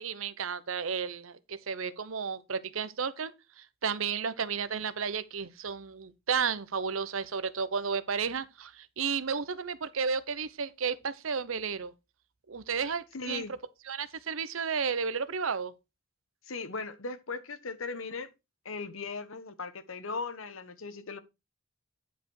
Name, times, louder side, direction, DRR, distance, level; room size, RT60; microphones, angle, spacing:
voice 1, 0.0-11.9 12.5-13.5 13.9-15.7, right 6 dB, 80° right, 0.8 m, -33 dB
voice 2, 13.1-13.5 16.5-18.3 18.6-21.2, left 4 dB, 80° left, 1.1 m, -38 dB
10.0 x 5.0 x 4.7 m
head